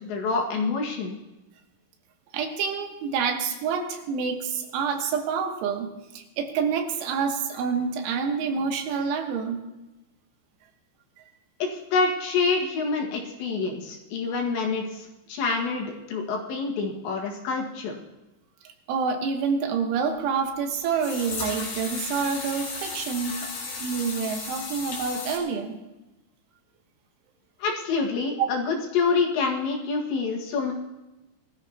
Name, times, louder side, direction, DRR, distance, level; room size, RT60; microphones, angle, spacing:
voice 1, 0.0-1.2 11.6-17.9 27.6-30.7, left 4 dB, 70° left, 0 dB, 4.0 m, -27 dB
voice 2, 2.3-9.6 18.9-25.8 28.4-28.5, right 6 dB, 80° right, 4 dB, 3.8 m, -27 dB
sound 1, 20.1-20.2 21.0-25.4, left 4 dB, 45° left, 3.4 m, -34 dB
21.5 x 13.5 x 2.9 m, 1.0 s
omnidirectional pair, 5.4 m